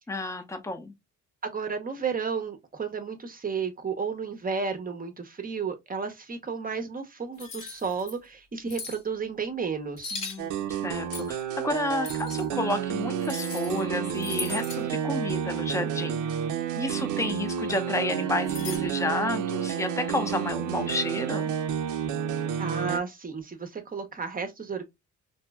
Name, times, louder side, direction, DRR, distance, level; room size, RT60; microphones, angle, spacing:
voice 1, 0.1-0.9 10.1-16.2 16.8-21.5, left 2 dB, 10° left, 0.6 m, -31 dB
voice 2, 1.4-10.1 22.6-24.9, right 5 dB, 30° right, 0.7 m, -32 dB
sound 1, 7.4-8.1 8.7-9.0 10.0-10.4 11.1-11.4 12.0-12.4 13.2-13.8 14.1-14.8 18.5-18.8, left 3 dB, 85° left, 1.4 m, -37 dB
sound 2, 10.4-23.0, right 8 dB, 85° right, 0.5 m, -30 dB
2.9 x 2.7 x 2.2 m
cardioid pair, 90°, 30 cm